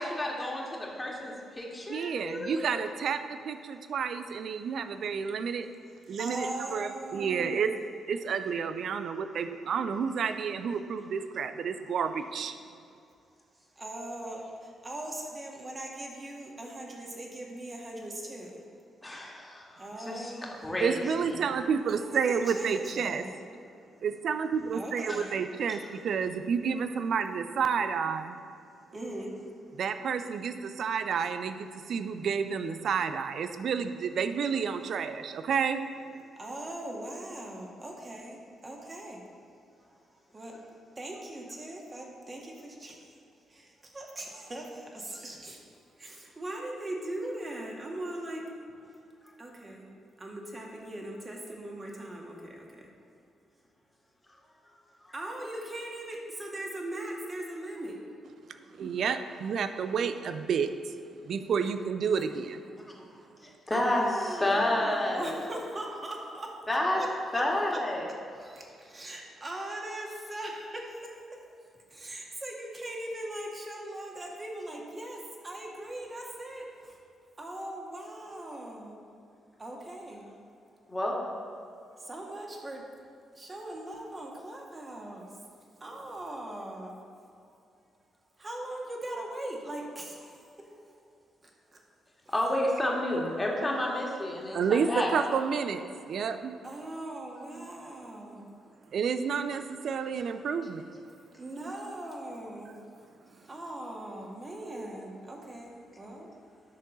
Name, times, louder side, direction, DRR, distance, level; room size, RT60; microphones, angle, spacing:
voice 1, 0.0-2.6 19.0-21.4 25.0-25.3 25.7-25.8 49.2-49.3 54.6-54.7 55.0-55.1 62.8-62.9 63.4-65.4 66.7-67.0 67.3-68.1 80.9-81.2 92.3-95.1, left 1 dB, 20° left, -2 dB, 2.1 m, -30 dB
voice 2, 1.9-5.7 6.1-7.8 8.1-12.6 20.8-23.2 24.0-28.4 29.8-35.9 58.8-60.9 61.2-62.6 94.5-96.5 97.6-97.7 98.9-100.8, right 6 dB, 55° right, 9 dB, 0.5 m, -30 dB
voice 3, 6.2-7.8 13.8-18.7 19.8-20.8 21.9-23.4 24.7-25.4 28.9-29.4 36.4-39.2 40.3-40.7 41.0-43.1 43.5-45.6 46.0-48.5 49.4-49.9 50.2-52.9 55.1-58.0 63.7-66.6 66.9-67.1 67.3-67.8 68.3-71.4 71.7-77.0 77.4-79.0 79.6-80.3 82.0-82.8 83.3-85.3 85.8-87.0 87.4-87.6 88.4-91.0 91.4-91.8 96.6-98.5 101.4-102.7 103.3-106.3, right 1 dB, 30° right, -1 dB, 1.9 m, -40 dB
10.5 x 6.6 x 4.0 m, 2.5 s
figure-of-eight pair, 40°, 0 cm